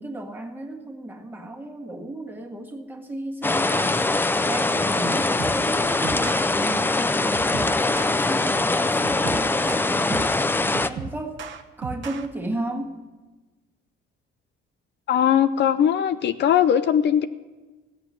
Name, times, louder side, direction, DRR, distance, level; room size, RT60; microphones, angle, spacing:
voice 1, 0.0-10.3 10.8-11.4 11.8-13.0, right 1 dB, 10° right, 1 dB, 1.6 m, -34 dB
sound 1, 3.4-10.9, left 2 dB, 10° left, 0.4 m, -22 dB
sound 2, 5.4-5.7 6.0-6.5 7.3-8.2 9.0-10.4 10.7-12.3, right 6 dB, 70° right, 1.1 m, -35 dB
voice 2, 15.1-17.3, left 9 dB, 60° left, 11 dB, 0.6 m, -20 dB
16.5 x 7.9 x 9.6 m, 1.2 s
cardioid pair, 155°, 21 cm